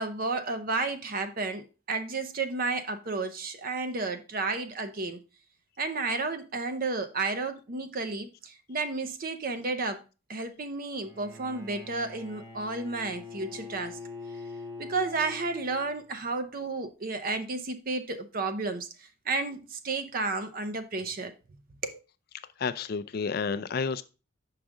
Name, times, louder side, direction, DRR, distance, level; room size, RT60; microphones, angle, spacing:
voice 1, 0.0-5.2 5.8-10.0 10.3-14.0 14.8-21.3 21.8-22.0, right 3 dB, 45° right, 0.6 m, -32 dB
Bowed string instrument, 10.9-16.2, left 3 dB, 15° right, 0.9 m, -44 dB
voice 2, 22.6-24.0, left 5 dB, 50° left, 0.4 m, -30 dB
6.1 x 4.9 x 3.7 m
head